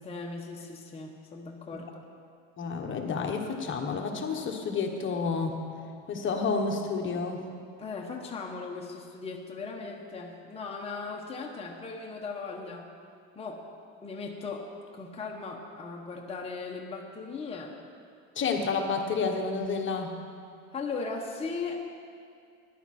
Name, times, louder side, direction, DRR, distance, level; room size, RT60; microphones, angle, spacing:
voice 1, 0.0-2.0 7.8-12.9 13.3-13.7 14.0-17.8 20.7-21.9, left 4 dB, 20° left, -1 dB, 1.2 m, -38 dB
voice 2, 2.6-5.6 6.1-7.5 18.3-20.2, left 4 dB, 35° left, 3 dB, 1.4 m, -30 dB
14.0 x 10.5 x 4.4 m, 2.3 s
supercardioid pair, 105°, 33 cm